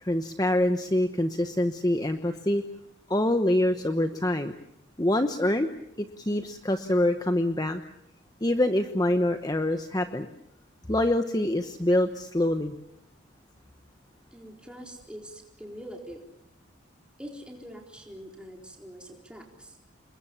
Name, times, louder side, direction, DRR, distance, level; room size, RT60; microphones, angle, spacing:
voice 1, 0.0-2.6 3.1-4.5 5.0-5.7 6.2-7.8 8.4-10.3 10.9-12.7, left 1 dB, 20° left, 7 dB, 1.0 m, -25 dB
voice 2, 14.3-16.3 17.2-19.8, equal, 5° right, 1 dB, 4.2 m, -44 dB
28.5 x 22.0 x 7.2 m, 0.80 s
head